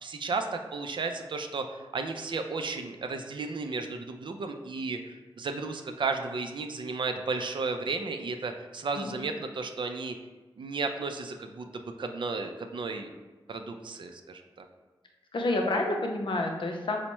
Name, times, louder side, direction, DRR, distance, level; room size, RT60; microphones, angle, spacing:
voice 1, 0.0-10.2 10.6-13.1 13.5-14.7, right 4 dB, 60° right, 6 dB, 0.4 m, -34 dB
voice 2, 15.3-17.0, left 2 dB, 60° left, 2 dB, 0.6 m, -29 dB
4.3 x 2.1 x 3.0 m, 1.2 s
cardioid pair, 45°, 9 cm